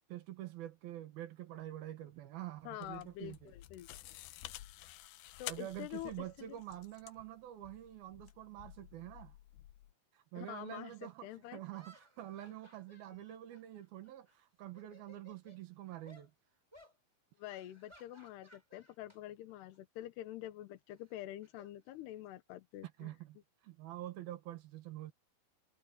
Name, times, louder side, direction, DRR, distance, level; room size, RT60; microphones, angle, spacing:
voice 1, 0.1-3.6 5.5-9.4 10.1-16.3 23.0-23.4 23.6-25.1, right 13 dB, 65° right, 2.8 m, -47 dB
sound 1, 2.6-9.9, left 15 dB, 90° left, 2.2 m, -52 dB
voice 2, 2.6-3.9 5.4-6.6 10.4-11.6 17.4-23.1, left 13 dB, 70° left, 2.8 m, -47 dB
sound 2, 10.9-11.0 11.7-14.3 14.7-15.6 16.1-16.3 16.7-17.0 17.5-19.2 19.5-19.8 21.0-22.4, equal, 5° right, 6.2 m, -62 dB
omnidirectional pair, 5.5 m